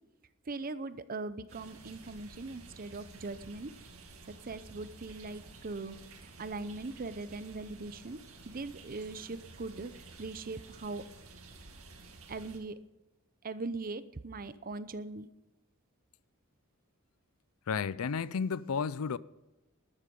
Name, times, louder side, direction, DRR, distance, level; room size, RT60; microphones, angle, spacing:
voice 1, 0.5-3.7 4.5-5.9 6.4-8.2 8.5-9.9 10.2-11.0 12.3-12.7 13.4-15.3, right 3 dB, 40° right, 0.7 m, -40 dB
sound 1, 1.5-12.6, right 3 dB, 75° right, 2.3 m, -52 dB
voice 2, 17.7-19.2, left 6 dB, 90° left, 0.5 m, -32 dB
13.5 x 12.5 x 5.3 m
head